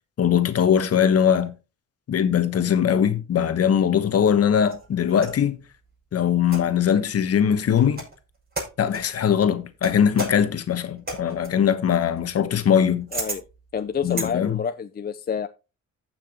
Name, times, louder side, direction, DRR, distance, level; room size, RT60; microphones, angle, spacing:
voice 1, 0.2-1.5 2.1-5.6 6.1-8.0 8.8-13.1 14.0-14.6, left 8 dB, 55° left, 1.2 m, -21 dB
sound 1, 4.1-5.5 6.4-6.9 7.7-8.2 8.5-9.1 9.8-14.3, right 2 dB, 30° right, 6.3 m, -35 dB
voice 2, 13.1-13.4 13.7-15.5, left 7 dB, 30° left, 0.6 m, -28 dB
15.0 x 5.9 x 3.0 m
cardioid pair, 90°, 30 cm